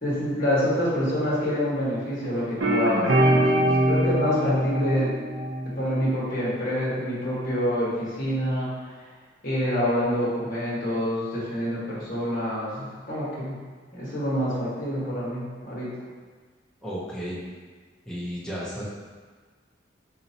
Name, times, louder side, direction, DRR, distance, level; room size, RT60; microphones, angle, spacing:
voice 1, 0.0-5.1 5.8-8.7 9.4-13.6 13.9-15.9, equal, 50° left, -8 dB, 1.2 m, -27 dB
sound 1, 2.6-6.1, right 1 dB, 85° right, 0.5 m, -23 dB
voice 2, 16.8-17.4 18.0-18.8, equal, 5° left, -8 dB, 0.7 m, -33 dB
4.1 x 2.8 x 2.8 m, 1.5 s
head